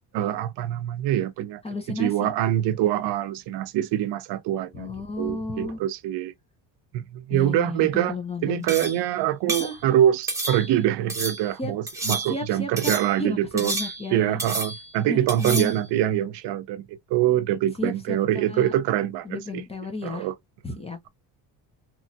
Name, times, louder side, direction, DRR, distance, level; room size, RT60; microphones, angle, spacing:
voice 1, 0.1-1.6 1.9-4.9 5.2-6.3 6.9-8.2 8.4-13.7 14.1-19.6 20.0-20.3 20.7-20.8, right 12 dB, 70° right, 0.6 m, -24 dB
voice 2, 1.6-2.3 4.7-5.8 7.3-9.0 9.6-9.8 11.6-11.7 12.3-12.9 13.2-14.4 15.1-15.7 17.8-18.7 19.2-20.3 20.6-21.1, left 2 dB, 15° left, 0.5 m, -33 dB
sound 1, 8.7-9.1 9.5-9.8 10.3-10.8 11.1-11.5 11.9-12.5 12.8-13.2 13.6-14.1 14.4-14.9 15.3-15.8, right 2 dB, 5° right, 0.9 m, -30 dB
3.0 x 2.7 x 2.2 m
cardioid pair, 140°, 43 cm